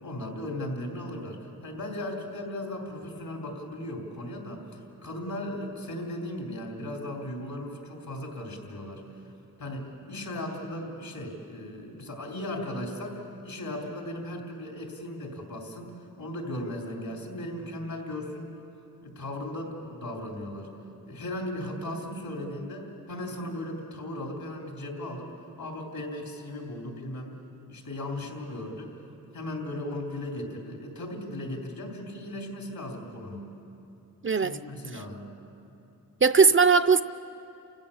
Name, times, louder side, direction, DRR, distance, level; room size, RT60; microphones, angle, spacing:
voice 1, 0.0-4.6 5.0-9.0 9.6-15.9 16.2-18.5 19.0-20.7 21.1-25.3 25.6-27.3 27.7-28.9 29.3-33.5 34.3-35.3, left 1 dB, 75° left, 3.6 m, -37 dB
voice 2, 34.2-34.6 36.2-37.0, right 5 dB, 35° right, 0.5 m, -19 dB
29.5 x 16.0 x 7.2 m
wide cardioid pair, 90°, 36 cm